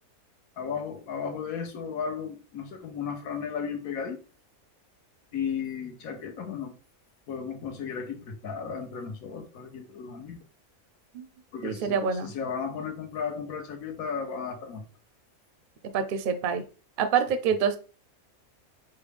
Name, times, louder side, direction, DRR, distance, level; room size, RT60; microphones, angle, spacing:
voice 1, 0.6-4.2 5.3-6.7 7.3-10.4 11.5-14.8, left 6 dB, 85° left, 1.3 m, -34 dB
voice 2, 11.6-12.3 15.9-16.6 17.0-17.8, right 6 dB, 60° right, 0.5 m, -26 dB
5.7 x 2.1 x 3.3 m
omnidirectional pair, 1.5 m